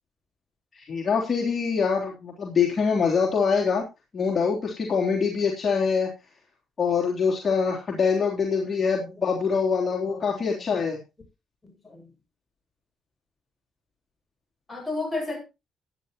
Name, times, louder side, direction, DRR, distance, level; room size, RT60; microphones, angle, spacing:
voice 1, 0.7-3.8 4.1-6.1 6.8-11.0, left 5 dB, 40° left, -2 dB, 3.6 m, -24 dB
voice 2, 10.1-10.6 11.6-12.1 14.7-15.4, left 2 dB, 15° left, 1 dB, 6.9 m, -34 dB
16.5 x 10.5 x 3.0 m, 0.26 s
cardioid pair, 90°, 0 cm